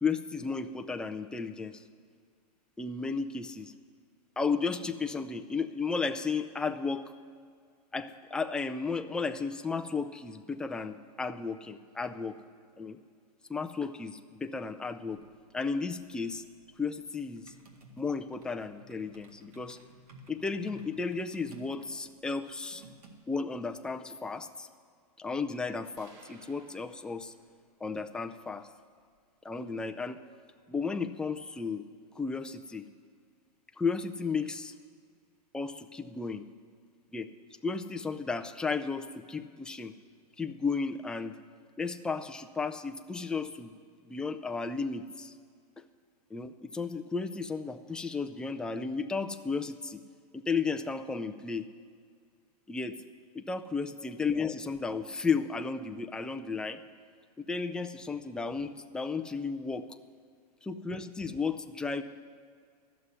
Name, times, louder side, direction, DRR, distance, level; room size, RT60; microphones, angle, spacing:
voice 1, 0.0-1.8 2.8-3.7 4.4-7.1 7.9-12.4 12.8-13.0 13.5-15.2 15.5-16.4 16.8-17.5 18.0-19.8 20.3-22.8 23.3-24.7 25.2-27.3 27.8-28.7 29.4-30.2 30.7-31.8 32.2-32.9 33.8-34.7 35.5-36.5 37.1-37.3 37.6-39.9 40.4-41.3 41.8-43.7 44.0-45.3 46.3-50.0 50.3-51.7 52.7-53.0 53.3-56.8 57.4-59.8 60.6-62.0, left 4 dB, 5° left, 7 dB, 0.3 m, -34 dB
sound 1, 15.1-23.1, right 2 dB, 70° right, 2.0 m, -56 dB
sound 2, 26.0-27.9, right 3 dB, 45° right, 1.8 m, -58 dB
12.5 x 6.9 x 9.7 m, 2.1 s
hypercardioid pair, 140°, 20 cm